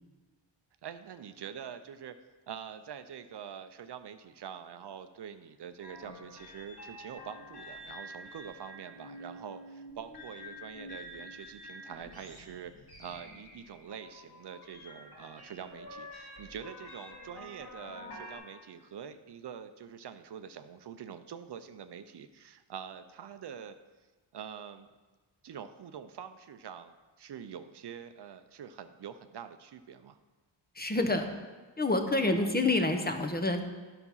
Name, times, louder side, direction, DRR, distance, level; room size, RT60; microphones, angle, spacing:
voice 1, 0.8-2.1 2.5-12.7 13.0-23.8 24.3-24.9 25.4-30.2 32.4-32.5, right 8 dB, 60° right, 10 dB, 0.6 m, -45 dB
sound 1, 5.8-18.4, left 1 dB, 50° left, 2.3 m, -48 dB
voice 2, 30.7-31.3 31.8-33.6, left 2 dB, 20° left, 6 dB, 0.8 m, -27 dB
9.6 x 5.9 x 5.6 m, 1.3 s
wide cardioid pair, 95°, 47 cm